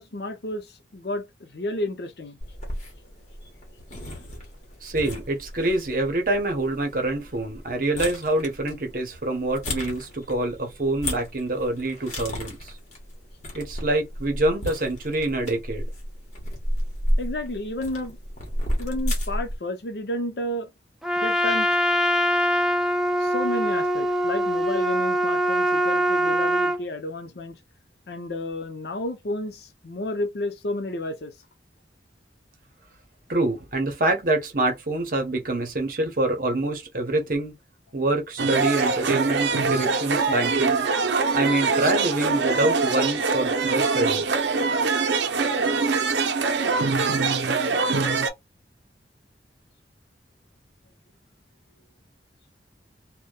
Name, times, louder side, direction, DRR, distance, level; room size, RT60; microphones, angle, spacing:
voice 1, 0.0-2.4 4.0-4.4 17.2-18.2 18.8-20.7 21.2-21.8 23.2-27.6 28.1-31.3, left 1 dB, 65° left, 0.6 m, -31 dB
sound 1, 2.4-19.6, equal, 40° left, 1.0 m, -33 dB
voice 2, 4.8-12.7 13.5-15.9 33.3-37.5 37.9-40.8 41.3-44.3, right 2 dB, 50° right, 0.8 m, -26 dB
Trumpet, 21.0-26.8, equal, ahead, 0.3 m, -23 dB
sound 2, 38.4-48.3, right 4 dB, 75° right, 0.5 m, -23 dB
2.7 x 2.2 x 2.2 m
head